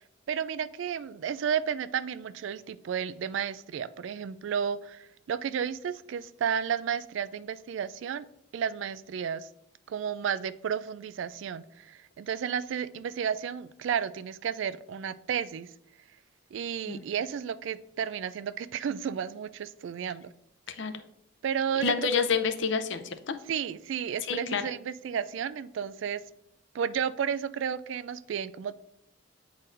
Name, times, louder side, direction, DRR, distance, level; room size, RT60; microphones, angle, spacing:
voice 1, 0.3-8.3 8.5-9.5 9.9-15.7 16.5-20.3 21.4-22.3 23.5-26.2 26.7-28.8, right 8 dB, 70° right, 15 dB, 0.3 m, -32 dB
voice 2, 21.8-23.4 24.2-24.6, left 6 dB, 65° left, 9 dB, 0.6 m, -29 dB
8.9 x 4.2 x 2.5 m, 0.78 s
head